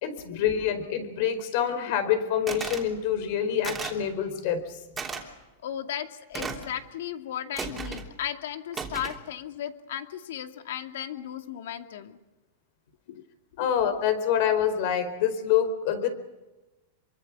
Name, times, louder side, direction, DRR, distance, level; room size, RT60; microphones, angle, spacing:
voice 1, 0.0-4.6 13.6-16.1, left 9 dB, 55° left, 10 dB, 4.6 m, -26 dB
sound 1, 2.5-2.9 3.6-4.0 5.0-5.2 6.3-6.7 7.6-8.1 8.7-9.2, right 5 dB, 15° right, 3.2 m, -34 dB
voice 2, 5.6-12.2 13.1-13.2 13.6-13.7, left 10 dB, 75° left, 6 dB, 2.4 m, -36 dB
26.5 x 24.0 x 6.2 m, 1.1 s
supercardioid pair, 155°, 0 cm